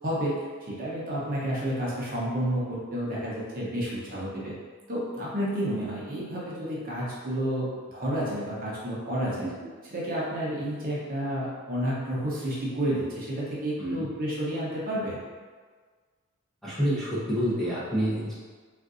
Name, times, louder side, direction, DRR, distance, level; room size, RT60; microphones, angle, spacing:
voice 1, 0.0-4.5 4.9-9.5 9.9-15.2, equal, 40° right, -6 dB, 0.7 m, -30 dB
voice 2, 16.6-18.3, equal, ahead, -10 dB, 0.7 m, -28 dB
3.7 x 2.5 x 2.4 m, 1.5 s
head